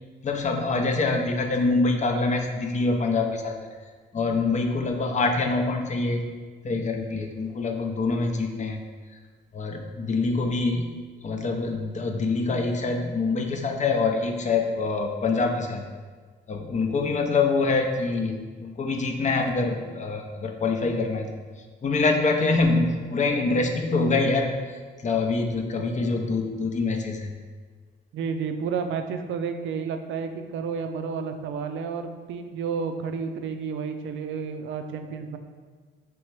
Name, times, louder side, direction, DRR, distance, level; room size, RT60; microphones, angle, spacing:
voice 1, 0.2-3.5 4.1-6.2 6.6-8.8 9.5-10.9 11.2-15.8 16.5-21.3 21.8-24.5 25.0-27.3, left 3 dB, 35° left, 3 dB, 0.6 m, -25 dB
voice 2, 28.1-35.4, right 6 dB, 75° right, 7 dB, 0.4 m, -31 dB
3.2 x 3.1 x 4.6 m, 1.5 s
cardioid pair, 90°, 20 cm